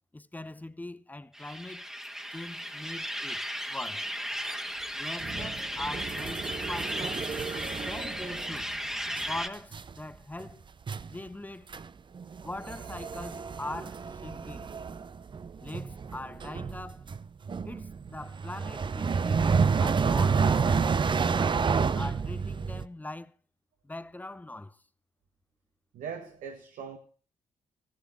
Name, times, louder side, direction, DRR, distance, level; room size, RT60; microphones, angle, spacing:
voice 1, 0.1-1.9 2.3-4.1 4.9-7.2 7.9-8.7 9.3-10.7 11.0-11.7 12.4-14.7 15.6-17.0 17.6-20.9 21.3-23.3 23.8-24.8, left 2 dB, 10° left, 0.9 m, -42 dB
sound 1, 1.3-9.5, equal, 5° right, 1.6 m, -36 dB
sound 2, 5.2-8.8 9.1-9.4 9.7-10.0 10.4-10.5 10.9-11.2 11.7-11.9 12.1-22.8, right 5 dB, 35° right, 0.7 m, -30 dB
voice 2, 25.9-27.0, right 6 dB, 80° right, 1.5 m, -40 dB
14.5 x 10.5 x 6.4 m
cardioid pair, 75°, 13 cm